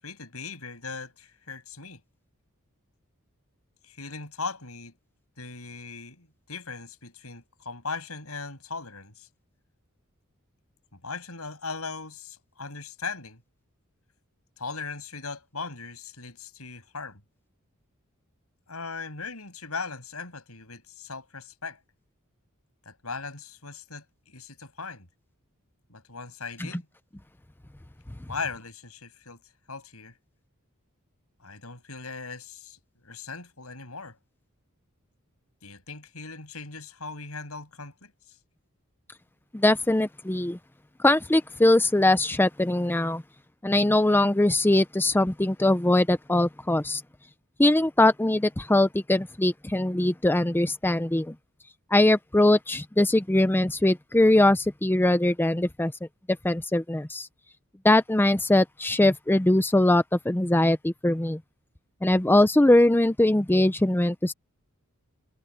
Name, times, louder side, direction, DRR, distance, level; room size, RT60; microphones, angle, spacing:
voice 1, 0.0-2.0 3.8-4.9 5.4-9.3 10.9-13.4 14.6-17.2 18.7-21.8 22.9-25.1 25.9-26.9 28.3-29.4 29.7-30.1 31.4-34.2 35.6-38.1, left 4 dB, 85° left, 7.8 m, -39 dB
voice 2, 39.5-40.6 41.0-43.2 43.6-47.0 47.6-51.4 51.9-55.9 56.4-57.3 57.8-61.4 62.0-64.3, left 1 dB, 10° left, 0.6 m, -21 dB
head